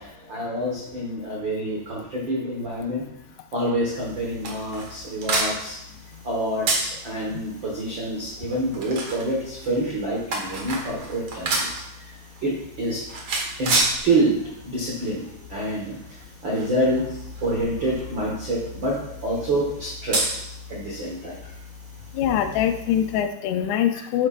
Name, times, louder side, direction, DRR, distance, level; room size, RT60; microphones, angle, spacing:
voice 1, 0.0-3.0 3.5-5.8 6.2-13.1 13.6-21.5 22.5-22.6, right 1 dB, 75° right, -4 dB, 1.0 m, -27 dB
sound 1, 3.9-23.2, right 2 dB, 55° right, 1.3 m, -32 dB
voice 2, 22.1-24.3, left 10 dB, 85° left, 7 dB, 2.8 m, -23 dB
10.5 x 8.3 x 2.6 m, 0.80 s
omnidirectional pair, 4.7 m